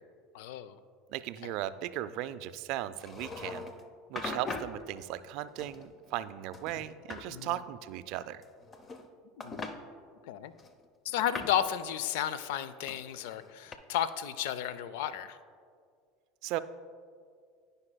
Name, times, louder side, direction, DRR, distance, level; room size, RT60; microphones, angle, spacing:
voice 1, 0.3-0.8 1.4-1.5 7.3-7.5 9.4-9.6 10.2-10.5 11.0-15.4, left 10 dB, 75° left, 14 dB, 0.3 m, -33 dB
voice 2, 1.1-3.7 4.1-8.4 16.4-16.6, right 13 dB, 65° right, 13 dB, 0.3 m, -37 dB
sound 1, 3.0-3.8 4.2-4.8 5.6-6.3 6.5-7.3 8.4-9.1 9.4-9.8 10.6-11.6 12.9-13.7, left 3 dB, 30° left, 0.6 m, -41 dB
13.5 x 5.4 x 2.2 m, 2.1 s
hypercardioid pair, 85°, 0 cm